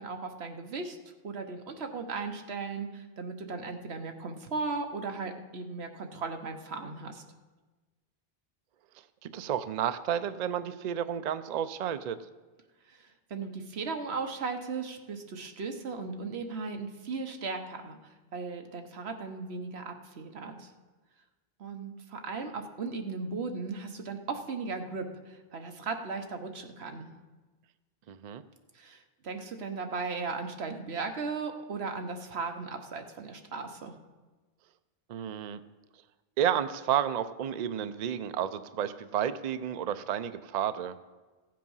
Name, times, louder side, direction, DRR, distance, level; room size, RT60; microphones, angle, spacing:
voice 1, 0.0-7.2 12.9-20.7 21.6-27.1 28.7-33.9, right 4 dB, 90° right, 5 dB, 1.3 m, -37 dB
voice 2, 9.2-12.2 28.1-28.4 35.1-35.6 36.4-41.0, right 9 dB, 55° right, 12 dB, 0.5 m, -31 dB
15.0 x 7.5 x 5.5 m, 1.2 s
omnidirectional pair, 1.0 m